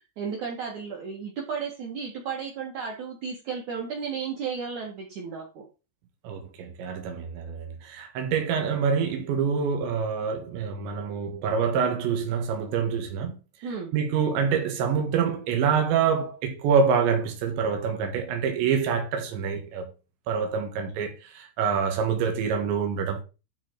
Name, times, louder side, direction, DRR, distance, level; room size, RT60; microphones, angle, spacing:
voice 1, 0.0-5.6 13.6-13.9, right 6 dB, 55° right, 2.6 m, -34 dB
voice 2, 6.3-13.4 13.9-19.9 20.3-23.2, right 6 dB, 85° right, 3.9 m, -26 dB
12.5 x 4.3 x 4.6 m
omnidirectional pair, 5.0 m